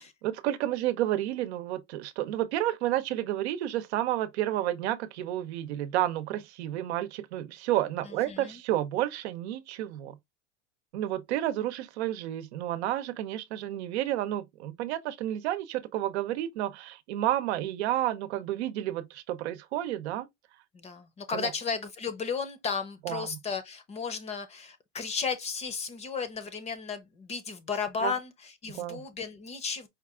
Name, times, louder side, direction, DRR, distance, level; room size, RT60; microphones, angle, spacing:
voice 1, 0.2-10.1 10.9-20.3 21.3-21.5 23.0-23.4 28.0-28.1 28.7-29.0, right 13 dB, 75° right, 0.8 m, -31 dB
voice 2, 8.0-8.6 20.7-29.9, left 5 dB, 20° left, 0.7 m, -34 dB
5.1 x 2.4 x 3.6 m
supercardioid pair, 150°, 34 cm